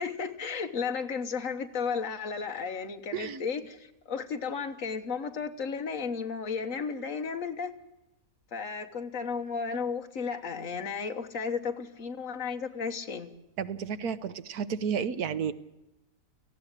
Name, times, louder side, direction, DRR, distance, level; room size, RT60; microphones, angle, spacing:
voice 1, 0.0-7.8 8.5-13.4, left 5 dB, 60° left, 7 dB, 1.7 m, -34 dB
voice 2, 13.6-15.5, right 7 dB, 80° right, 14 dB, 1.4 m, -32 dB
18.5 x 15.0 x 9.8 m, 0.90 s
omnidirectional pair, 1.6 m